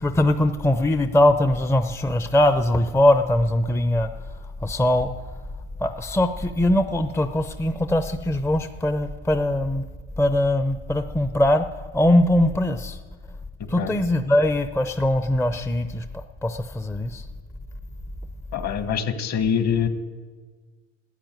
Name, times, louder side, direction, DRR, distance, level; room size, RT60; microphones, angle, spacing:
voice 1, 0.0-4.1 4.6-5.1 5.8-9.8 10.2-13.0 13.7-17.3, left 1 dB, 5° left, 10 dB, 0.6 m, -21 dB
voice 2, 18.5-19.9, left 7 dB, 45° left, 11 dB, 1.5 m, -24 dB
13.5 x 8.8 x 9.0 m, 1.4 s
hypercardioid pair, 80°, 36 cm